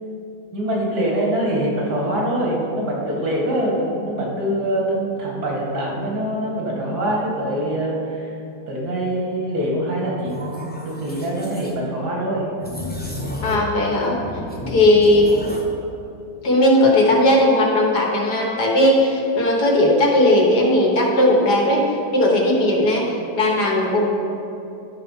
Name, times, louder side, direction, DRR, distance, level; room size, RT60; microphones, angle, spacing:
voice 1, 0.5-8.4 8.7-12.5, right 1 dB, 80° right, -3 dB, 2.5 m, -24 dB
sound 1, 10.2-11.7 12.6-13.7 14.0-15.7, left 1 dB, 10° left, 0.7 m, -32 dB
voice 2, 13.4-14.2 14.7-15.3 16.4-23.1 23.4-24.1, left 1 dB, 80° left, -1 dB, 2.0 m, -17 dB
11.5 x 4.5 x 5.6 m, 2.9 s
omnidirectional pair, 1.7 m